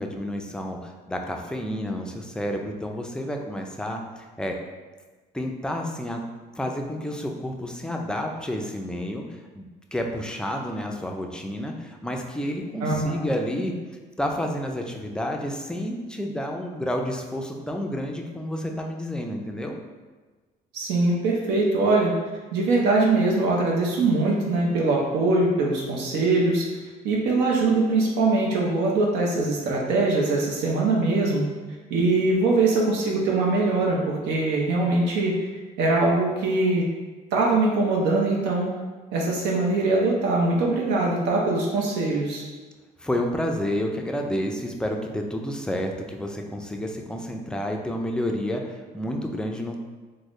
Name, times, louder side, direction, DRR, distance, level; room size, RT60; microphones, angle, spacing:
voice 1, 0.0-4.6 5.3-6.2 6.5-9.6 9.9-13.7 14.2-19.8 43.0-49.8, left 1 dB, 5° left, 2 dB, 0.3 m, -30 dB
voice 2, 12.8-13.3 20.7-22.1 22.5-26.7 27.0-31.4 31.9-35.5 35.8-36.8 37.3-38.7 39.1-42.4, right 2 dB, 85° right, -2 dB, 0.6 m, -22 dB
3.6 x 2.0 x 3.0 m, 1.3 s
cardioid pair, 110°, 17 cm